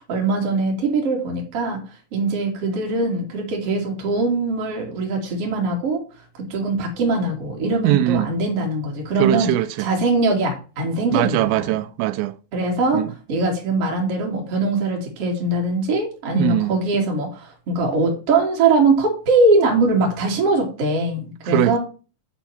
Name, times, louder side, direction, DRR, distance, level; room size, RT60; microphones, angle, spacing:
voice 1, 0.0-1.8 2.1-6.0 6.5-9.5 9.8-11.7 12.5-21.8, right 3 dB, 40° right, 2.4 m, -21 dB
voice 2, 7.8-8.3 9.2-9.9 11.1-12.3 12.9-13.1 16.3-16.7 21.4-21.8, right 15 dB, 85° right, 2.8 m, -21 dB
8.1 x 4.4 x 5.7 m
omnidirectional pair, 5.1 m